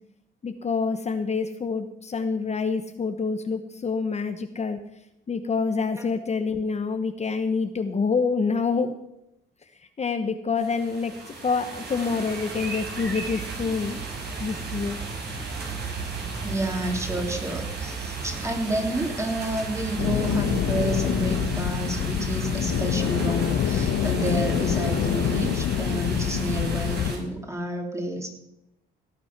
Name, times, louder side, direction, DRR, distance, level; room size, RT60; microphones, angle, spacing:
voice 1, 0.4-4.8 5.3-9.0 10.0-11.1 11.4-14.0 14.4-15.0, left 4 dB, 35° left, 8 dB, 1.0 m, -27 dB
sound 1, 10.6-27.2, right 4 dB, 55° right, 5.0 m, -34 dB
voice 2, 16.4-28.3, right 1 dB, 15° right, 3 dB, 3.1 m, -30 dB
sound 2, 20.0-27.1, left 9 dB, 80° left, 1.0 m, -26 dB
17.5 x 8.6 x 6.0 m, 0.86 s
cardioid pair, 90°, 20 cm